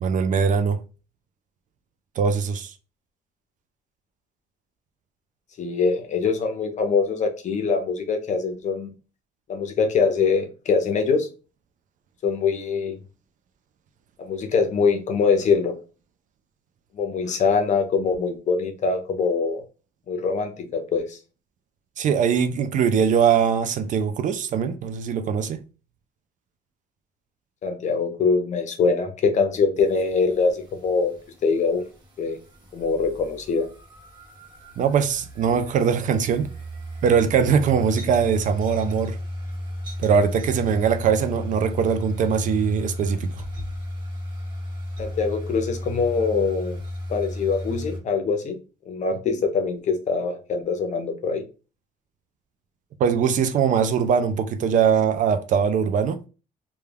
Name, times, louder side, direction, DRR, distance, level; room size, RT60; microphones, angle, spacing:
voice 1, 0.0-0.8 2.2-2.7 22.0-25.6 34.8-36.5 37.0-39.2 40.0-43.3 53.0-56.2, right 7 dB, 50° right, 0.4 m, -21 dB
voice 2, 5.6-8.9 9.5-11.3 12.2-13.0 14.2-15.8 16.9-19.6 20.1-21.2 27.6-31.1 31.4-31.8 32.2-32.4 32.7-33.7 45.0-46.8 47.1-48.6 48.9-51.4, left 5 dB, 45° left, 0.6 m, -23 dB
sound 1, 29.8-48.0, left 1 dB, 25° right, 1.2 m, -35 dB
2.2 x 2.2 x 3.3 m
cardioid pair, 110°, 17 cm